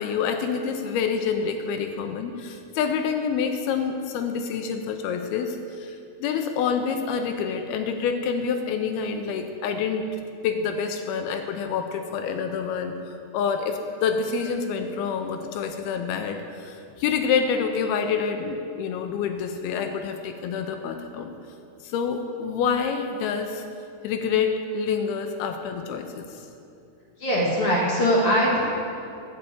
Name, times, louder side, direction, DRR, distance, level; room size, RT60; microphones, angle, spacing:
voice 1, 0.0-10.1 10.4-21.3 21.8-23.6 24.0-26.4, left 6 dB, 85° left, 6 dB, 2.3 m, -27 dB
voice 2, 27.2-28.6, equal, 60° left, -4 dB, 1.4 m, -21 dB
12.0 x 5.4 x 8.5 m, 2.6 s
omnidirectional pair, 4.9 m